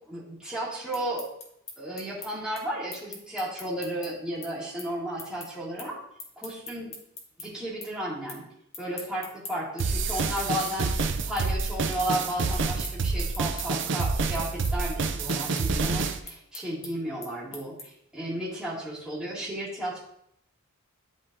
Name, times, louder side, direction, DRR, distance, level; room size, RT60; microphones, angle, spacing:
voice 1, 0.1-1.2 1.8-6.0 6.4-6.9 7.4-8.4 8.8-10.9 11.2-20.0, right 1 dB, 5° right, -9 dB, 2.1 m, -33 dB
sound 1, 0.9-7.5 7.8-8.4 8.7-18.1, left 3 dB, 30° left, 1.2 m, -43 dB
sound 2, 9.8-16.2, right 4 dB, 55° right, 0.5 m, -28 dB
11.0 x 3.8 x 2.6 m, 0.73 s
head